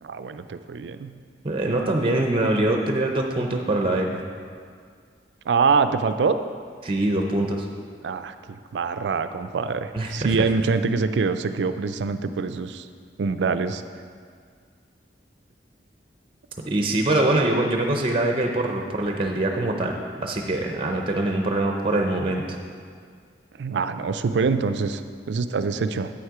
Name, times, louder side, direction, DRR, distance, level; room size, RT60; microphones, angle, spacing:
voice 1, 0.0-1.1 5.5-6.4 8.0-12.9 13.2-13.8 23.6-26.1, right 5 dB, 80° right, 10 dB, 0.4 m, -25 dB
voice 2, 1.4-4.2 6.8-7.7 9.9-10.3 16.7-19.9 20.2-22.6, right 1 dB, 30° right, 2 dB, 0.6 m, -23 dB
8.6 x 6.5 x 4.7 m, 2.1 s
head